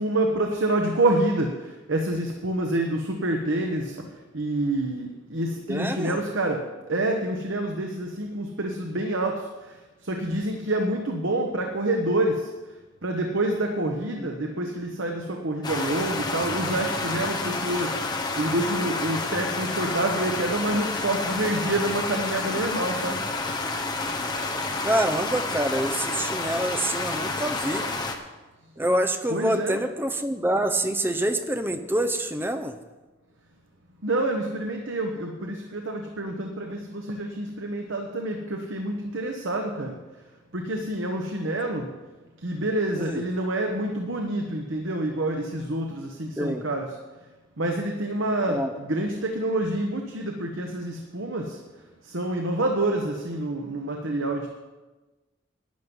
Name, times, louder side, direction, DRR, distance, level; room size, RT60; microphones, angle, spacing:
voice 1, 0.0-4.1 4.3-9.3 9.6-9.7 10.0-12.5 13.0-23.2 29.3-29.8 34.0-40.0 40.5-41.9 42.4-46.9 47.6-51.6 52.0-54.5, right 1 dB, 80° right, 2 dB, 1.1 m, -27 dB
voice 2, 5.7-6.2 14.2-14.7 24.8-27.8 28.8-32.8 43.0-43.2 46.4-46.6 48.4-48.7, right 1 dB, 10° right, 7 dB, 0.7 m, -26 dB
sound 1, 15.6-28.2, left 3 dB, 20° left, 1.0 m, -29 dB
11.5 x 9.6 x 5.4 m, 1.2 s
head